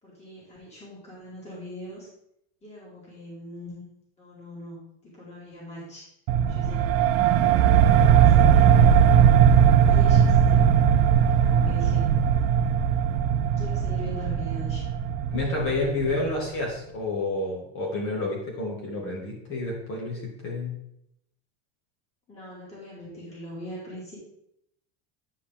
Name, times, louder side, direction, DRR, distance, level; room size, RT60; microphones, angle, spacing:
voice 1, 0.0-2.1 2.6-3.8 4.2-6.1 6.5-7.0 7.9-9.2 9.8-10.6 11.3-12.0 13.6-14.9 15.6-16.6 22.3-24.2, equal, 20° left, -5 dB, 2.5 m, -41 dB
sound 1, 6.3-16.5, right 8 dB, 60° right, 0.6 m, -19 dB
voice 2, 15.3-20.8, left 2 dB, 40° left, -2 dB, 2.0 m, -29 dB
9.5 x 5.0 x 3.7 m, 0.76 s
cardioid pair, 155°, 32 cm